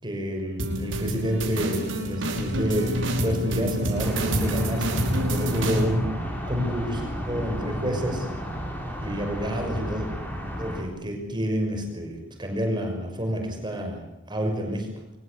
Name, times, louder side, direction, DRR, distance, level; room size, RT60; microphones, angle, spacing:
voice 1, 0.0-6.1 6.5-8.3 9.0-10.1 10.6-14.0 14.3-14.9, equal, 25° right, 3 dB, 5.9 m, -29 dB
sound 1, 0.6-5.8, equal, 85° right, 5.3 m, -27 dB
sound 2, 4.0-10.8, equal, 10° left, 6.4 m, -32 dB
25.0 x 21.5 x 8.3 m, 0.90 s
head